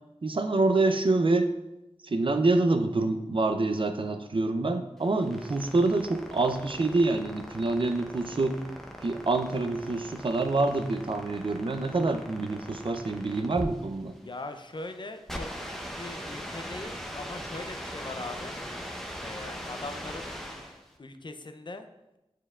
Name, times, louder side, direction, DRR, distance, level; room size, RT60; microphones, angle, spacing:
voice 1, 0.2-1.5 2.0-8.6 9.0-14.1, right 2 dB, 55° right, 6 dB, 0.5 m, -26 dB
sound 1, 5.0-20.9, equal, 5° left, 0.7 m, -40 dB
voice 2, 14.2-18.6 19.2-20.3 21.0-21.9, left 2 dB, 45° left, 7 dB, 0.5 m, -41 dB
8.9 x 4.6 x 2.4 m, 0.96 s
wide cardioid pair, 70°, 11 cm